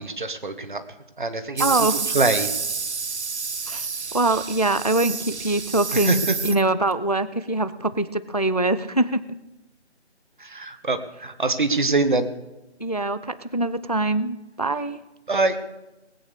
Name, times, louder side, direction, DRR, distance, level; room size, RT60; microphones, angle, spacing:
voice 1, 0.2-0.8 1.2-1.9 2.1-2.5 5.9-6.3 10.4-12.3 15.3-15.6, right 3 dB, 45° right, 10 dB, 1.3 m, -24 dB
voice 2, 1.6-2.2 3.7-3.9 4.1-9.2 12.8-15.0, right 2 dB, 35° left, 15 dB, 0.4 m, -23 dB
sound 1, 1.6-6.9, right 5 dB, 70° right, 1.1 m, -29 dB
19.5 x 8.9 x 6.7 m, 1.0 s
figure-of-eight pair, 175°, 35 cm